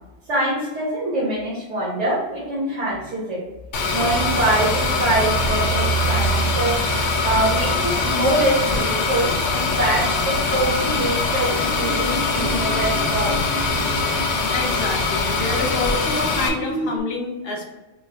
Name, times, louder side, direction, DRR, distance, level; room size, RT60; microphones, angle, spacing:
voice 1, 0.3-3.4 3.9-6.8 7.2-13.8, right 1 dB, 75° right, -8 dB, 1.6 m, -24 dB
sound 1, 3.7-16.5, left 3 dB, 85° left, 1.1 m, -22 dB
sound 2, 7.5-15.4 16.0-17.0, right 1 dB, 20° right, 0.5 m, -34 dB
voice 2, 14.5-17.7, left 3 dB, 60° left, 1 dB, 1.1 m, -27 dB
5.9 x 2.2 x 3.4 m, 1.1 s
omnidirectional pair, 1.2 m